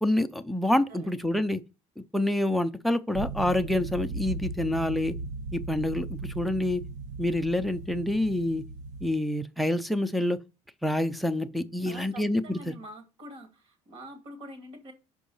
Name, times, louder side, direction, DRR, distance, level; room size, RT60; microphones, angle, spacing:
voice 1, 0.0-1.6 2.1-5.1 5.5-6.8 7.2-8.6 9.0-10.4 10.8-12.7, left 1 dB, ahead, 0.5 m, -27 dB
voice 2, 0.9-1.2 11.8-14.9, right 1 dB, 45° right, 2.2 m, -45 dB
sound 1, 3.1-9.1, right 3 dB, 65° right, 0.8 m, -37 dB
6.1 x 4.7 x 5.4 m
cardioid pair, 140°, 13 cm